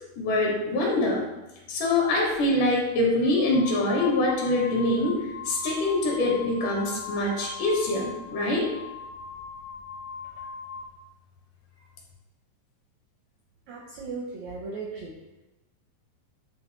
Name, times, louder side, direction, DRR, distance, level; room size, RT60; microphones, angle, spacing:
voice 1, 0.2-1.3 1.7-5.2 5.5-8.7, left 2 dB, 70° left, -2 dB, 2.7 m, -24 dB
sound 1, 2.3-2.4 3.2-11.0, left 5 dB, 90° left, 1.6 m, -40 dB
voice 2, 13.7-15.2, right 4 dB, 80° right, 0 dB, 1.6 m, -37 dB
9.3 x 3.5 x 3.0 m, 1.0 s
omnidirectional pair, 4.0 m